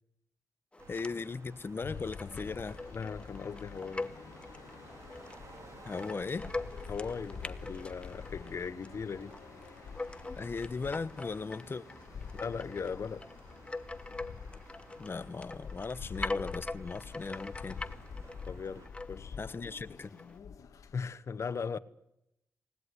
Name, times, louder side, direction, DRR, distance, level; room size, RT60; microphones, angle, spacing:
sound 1, 0.7-20.4, left 2 dB, 20° left, 1.1 m, -44 dB
sound 2, 0.8-18.9, right 4 dB, 60° right, 2.4 m, -56 dB
voice 1, 0.9-2.8 5.8-6.5 10.4-11.8 15.0-17.8 19.4-20.2, left 4 dB, 40° left, 1.1 m, -38 dB
sound 3, 1.8-21.0, left 6 dB, 80° left, 1.6 m, -47 dB
voice 2, 2.9-4.1 6.9-9.3 12.3-13.3 18.5-19.4 20.9-21.8, left 5 dB, 60° left, 1.3 m, -38 dB
20.0 x 19.0 x 9.9 m
cardioid pair, 70°, 6 cm